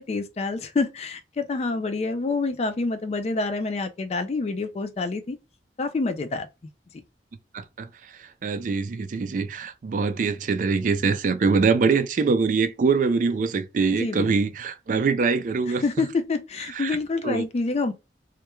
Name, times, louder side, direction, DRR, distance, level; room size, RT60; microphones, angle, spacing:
voice 1, 0.0-5.4 5.8-6.5 13.9-14.3 15.8-17.9, left 3 dB, 35° left, 0.3 m, -27 dB
voice 2, 7.5-16.1 16.8-17.0 17.2-17.4, right 4 dB, 45° right, 0.3 m, -24 dB
2.2 x 2.1 x 2.9 m
head